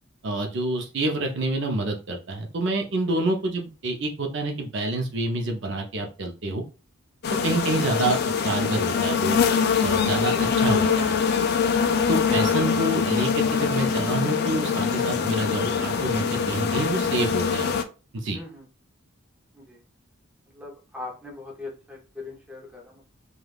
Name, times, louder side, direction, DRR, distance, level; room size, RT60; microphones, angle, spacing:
voice 1, 0.2-6.6 7.4-9.4 9.8-11.2 12.1-17.7 18.1-18.4, right 2 dB, 55° right, 3 dB, 0.6 m, -27 dB
sound 1, 7.2-17.8, left 6 dB, 50° left, 0.3 m, -23 dB
voice 2, 18.3-18.6 19.5-19.8 20.5-23.1, left 3 dB, 5° right, -1 dB, 0.7 m, -40 dB
3.3 x 2.3 x 2.3 m, 0.32 s
head